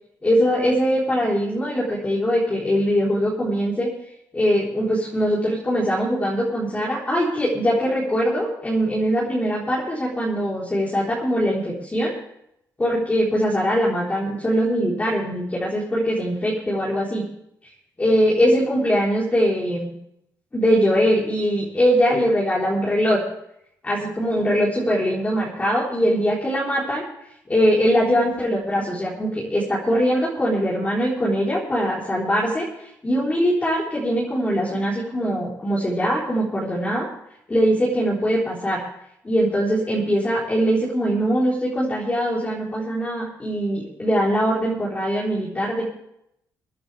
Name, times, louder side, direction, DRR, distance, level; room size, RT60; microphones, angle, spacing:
voice 1, 0.2-3.9 4.3-12.1 12.8-17.2 18.0-19.9 20.5-23.2 23.8-27.0 27.5-32.6 33.0-37.1 37.5-38.8 39.2-45.8, equal, 20° left, -6 dB, 4.2 m, -22 dB
26.0 x 10.0 x 3.5 m, 0.77 s
cardioid pair, 100°, 7 cm